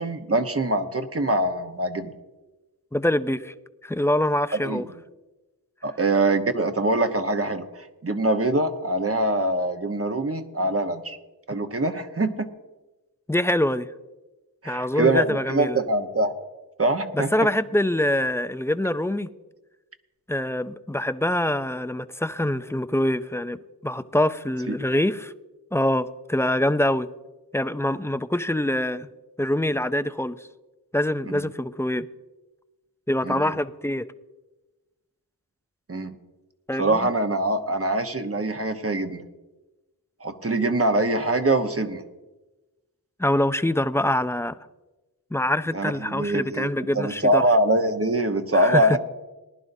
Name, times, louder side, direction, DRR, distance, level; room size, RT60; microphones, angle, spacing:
voice 1, 0.0-2.1 4.6-4.9 5.8-11.2 11.5-12.5 14.6-16.3 16.8-17.3 24.7-24.8 31.3-31.4 33.2-33.5 35.9-36.1 36.8-39.2 40.2-42.0 45.7-46.7 46.9-49.0, right 2 dB, 35° right, 1.0 m, -24 dB
voice 2, 2.9-3.5 3.8-4.8 13.3-13.9 14.7-15.8 17.1-19.3 20.3-25.3 25.7-27.1 27.5-29.1 29.4-30.4 30.9-32.1 33.1-34.1 36.7-37.1 43.2-44.6 45.3-47.4 48.5-49.0, left 1 dB, 5° left, 0.4 m, -24 dB
19.5 x 11.0 x 2.7 m
wide cardioid pair, 50°, 39 cm